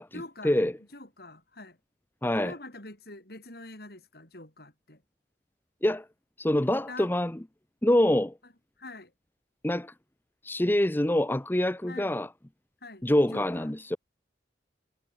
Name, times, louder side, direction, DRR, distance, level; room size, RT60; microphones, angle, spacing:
voice 1, 0.1-0.6 0.9-1.8 2.4-5.0 6.9-7.1 8.8-9.1 11.9-12.2 12.8-13.1 13.3-13.7, left 2 dB, 60° left, 6.9 m, -44 dB
voice 2, 2.2-2.5 5.8-6.1 6.4-7.4 7.8-8.3 9.6-9.9 10.4-12.3 13.0-14.0, left 1 dB, 10° left, 0.8 m, -25 dB
head